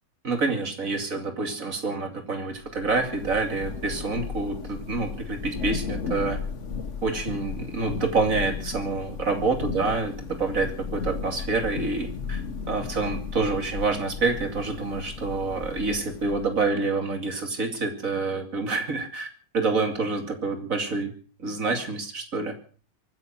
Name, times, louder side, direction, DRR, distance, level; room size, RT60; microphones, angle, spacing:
voice 1, 0.2-6.4 7.0-19.3 19.5-21.1 21.4-22.6, right 3 dB, 50° right, 6 dB, 2.8 m, -27 dB
Thunder / Rain, 2.6-16.7, left 5 dB, 45° left, 1.4 m, -35 dB
23.5 x 10.0 x 5.7 m, 0.42 s
omnidirectional pair, 1.9 m